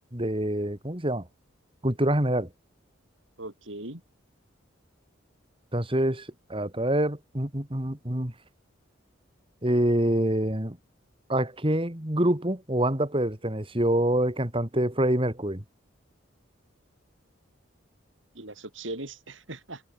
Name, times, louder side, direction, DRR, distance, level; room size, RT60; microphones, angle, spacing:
voice 1, 0.1-1.2 1.8-2.5 5.7-8.3 9.6-10.8 11.3-15.6, right 1 dB, 25° right, 2.8 m, -26 dB
voice 2, 3.4-4.0 18.3-19.8, right 2 dB, 70° right, 5.5 m, -39 dB
head